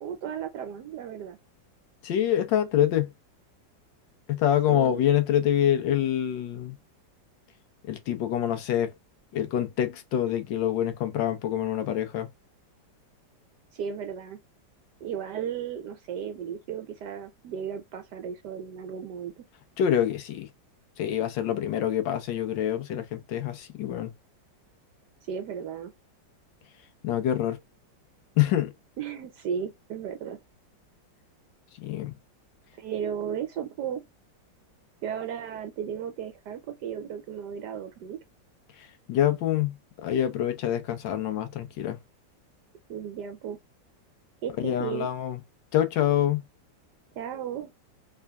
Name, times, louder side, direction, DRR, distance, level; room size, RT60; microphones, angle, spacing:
voice 1, 0.0-1.4 4.7-5.0 13.7-14.4 15.0-19.4 25.3-25.9 29.0-30.4 32.8-34.0 35.0-38.2 42.9-43.6 44.4-45.1 47.2-47.7, right 8 dB, 70° right, 1.1 m, -35 dB
voice 2, 2.0-3.1 4.3-6.8 7.9-8.9 9.3-12.3 19.8-20.5 21.0-24.1 27.0-27.6 28.4-28.7 31.8-32.1 39.1-39.7 40.0-42.0 44.6-45.4 45.7-46.4, left 10 dB, 75° left, 1.4 m, -26 dB
3.6 x 3.4 x 2.2 m
omnidirectional pair, 2.0 m